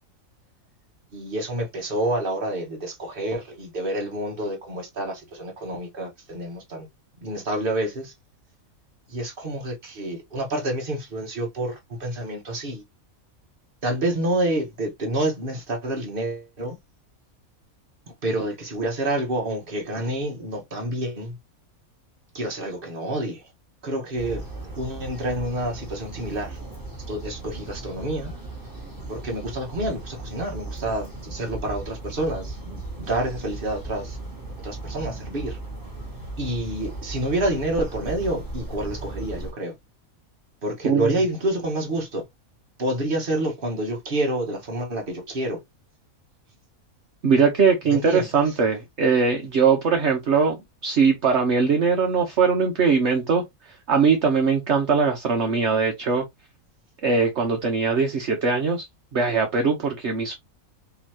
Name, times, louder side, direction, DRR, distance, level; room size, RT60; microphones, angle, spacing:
voice 1, 1.1-6.9 7.2-8.1 9.1-12.8 13.8-16.8 18.2-21.4 22.3-23.4 23.8-24.4 24.8-26.6 27.1-28.3 29.1-34.2 34.6-35.6 36.4-39.7 40.6-42.2 42.8-45.6 47.9-48.3, right 1 dB, 40° right, 1.5 m, -28 dB
sound 1, 24.2-39.5, right 2 dB, 15° right, 2.1 m, -36 dB
voice 2, 40.8-41.1 47.2-50.6 50.8-53.4 53.9-56.2 57.0-58.9 59.1-60.3, right 5 dB, 55° right, 1.2 m, -21 dB
5.4 x 3.1 x 2.8 m
omnidirectional pair, 1.5 m